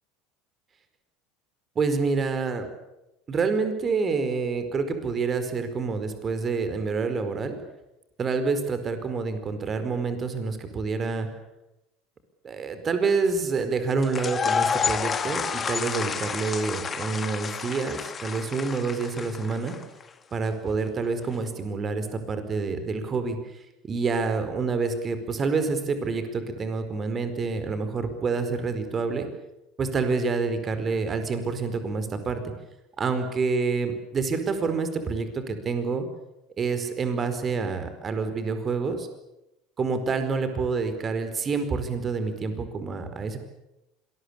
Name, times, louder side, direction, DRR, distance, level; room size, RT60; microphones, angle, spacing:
voice 1, 1.7-2.7 3.3-7.6 8.2-11.3 12.4-19.7 20.3-29.3 29.8-32.5 33.0-36.1 36.6-39.1 39.8-43.4, right 4 dB, 30° right, 9 dB, 4.7 m, -27 dB
sound 1, 14.0-20.0, left 6 dB, 30° left, 2.2 m, -29 dB
26.5 x 21.0 x 8.7 m, 0.92 s
hypercardioid pair, 75°, 0 cm